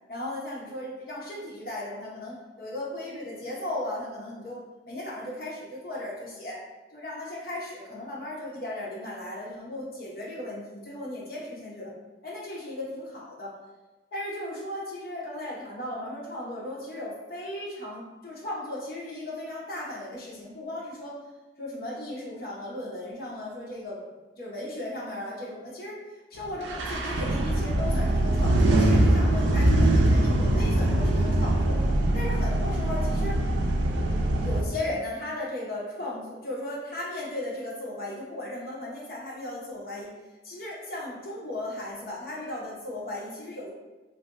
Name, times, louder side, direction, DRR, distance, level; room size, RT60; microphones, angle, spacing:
voice 1, 0.1-4.6 4.8-6.6 6.9-11.9 12.2-13.5 14.1-21.2 21.6-24.0 24.3-26.0 26.3-31.8 32.1-33.4 34.4-40.1 40.4-43.7, left 1 dB, 50° left, -5 dB, 0.8 m, -36 dB
sound 1, 26.6-34.6, right 1 dB, 80° right, 0.4 m, -23 dB
2.5 x 2.2 x 3.6 m, 1.2 s
head